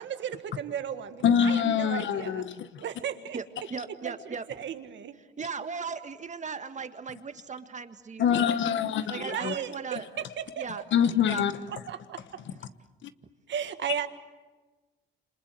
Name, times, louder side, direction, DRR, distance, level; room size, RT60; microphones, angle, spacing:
voice 1, 0.0-2.4 2.8-3.4 4.0-5.1 9.2-10.6 11.7-12.4 13.5-14.1, right 9 dB, 65° right, 1.7 m, -35 dB
voice 2, 1.2-2.8 8.2-9.5 10.9-11.5 13.0-13.1, left 8 dB, 70° left, 1.3 m, -25 dB
voice 3, 3.7-4.4 5.4-8.6 9.1-10.1 10.6-10.8 11.2-11.4, right 5 dB, 35° right, 1.8 m, -37 dB
28.0 x 26.5 x 7.8 m
cardioid pair, 90°, 20 cm